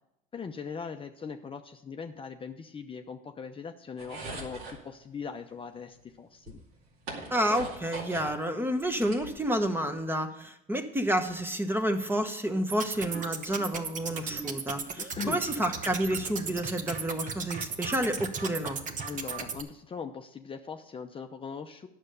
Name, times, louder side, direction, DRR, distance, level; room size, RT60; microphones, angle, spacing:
voice 1, 0.3-6.6 7.6-7.7 15.0-15.4 19.0-21.9, left 5 dB, 30° left, 5 dB, 0.7 m, -40 dB
sound 1, 4.0-4.8 6.0-6.1 6.5-8.4 8.7-9.8, right 3 dB, 85° right, 2.3 m, -41 dB
voice 2, 7.3-18.8, equal, 10° right, 7 dB, 1.1 m, -30 dB
sound 2, 12.7-19.6, right 5 dB, 45° right, 1.1 m, -36 dB
9.6 x 6.6 x 6.8 m, 0.82 s
supercardioid pair, 90°, 19 cm